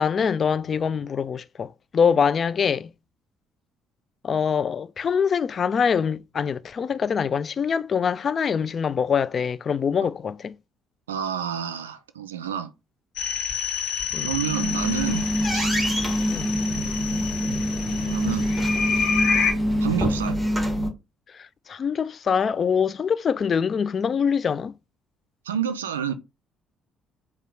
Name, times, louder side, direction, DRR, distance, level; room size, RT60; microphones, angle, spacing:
voice 1, 0.0-2.9 4.2-10.5 14.1-14.3 16.3-16.5 21.7-24.7, left 6 dB, 45° left, 0.3 m, -24 dB
voice 2, 11.1-12.7 14.1-15.7 17.8-18.5 19.8-20.4 25.5-26.1, right 9 dB, 85° right, 0.4 m, -29 dB
sound 1, 13.2-19.5, left 6 dB, 60° left, 0.8 m, -28 dB
sound 2, 14.4-20.9, equal, 5° right, 1.6 m, -25 dB
sound 3, 14.5-20.3, left 1 dB, 15° left, 2.7 m, -45 dB
4.6 x 2.3 x 3.3 m
figure-of-eight pair, 50°, 0 cm